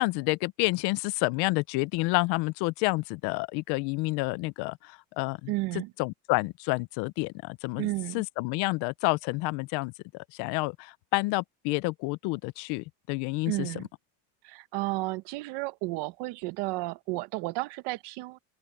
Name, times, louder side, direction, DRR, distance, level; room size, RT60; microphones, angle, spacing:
voice 1, 0.0-5.5 6.0-7.9 8.1-13.8, left 24 dB, 55° left, 0.6 m, -29 dB
voice 2, 5.5-5.9 7.8-8.2 13.5-13.9 14.4-18.4, right 21 dB, 55° right, 1.1 m, -32 dB
open air
cardioid pair, 160°, 47 cm